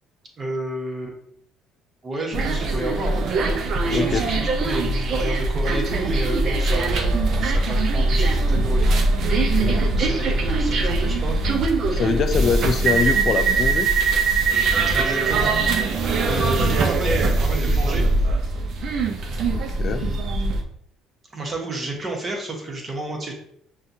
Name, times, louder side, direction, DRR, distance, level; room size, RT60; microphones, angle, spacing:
voice 1, 0.4-1.2 2.0-3.3 3.9-9.0 9.9-11.4 14.9-15.9 16.3-18.1 19.9-20.2 21.3-23.3, right 1 dB, 35° right, 1 dB, 1.2 m, -31 dB
sound 1, 2.3-20.6, right 3 dB, 55° right, 0.6 m, -21 dB
voice 2, 3.9-4.3 9.5-10.3 11.9-13.9 19.5-20.1, left 6 dB, 50° left, 8 dB, 0.3 m, -24 dB
5.6 x 2.4 x 2.7 m, 0.71 s
hypercardioid pair, 70°, 0 cm